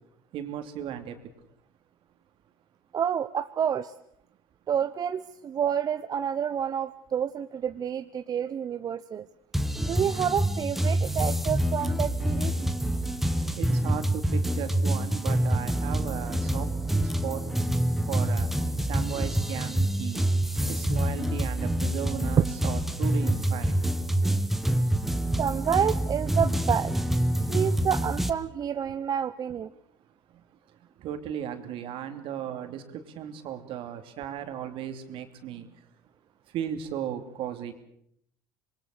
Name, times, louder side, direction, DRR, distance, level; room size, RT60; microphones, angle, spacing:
voice 1, 0.3-1.2 13.5-16.7 17.2-17.4 18.1-18.5 18.9-20.2 20.7-23.8 30.3-30.4 31.0-35.7 36.5-37.7, right 9 dB, 60° right, 7 dB, 2.8 m, -36 dB
voice 2, 2.9-3.9 4.7-9.3 9.9-12.7 22.4-22.5 25.4-26.9 27.5-29.7, right 8 dB, 40° right, 11 dB, 0.9 m, -28 dB
sound 1, 9.5-28.3, right 1 dB, 5° right, 1.5 m, -27 dB
26.0 x 21.0 x 6.7 m, 0.71 s
supercardioid pair, 85°, 10 cm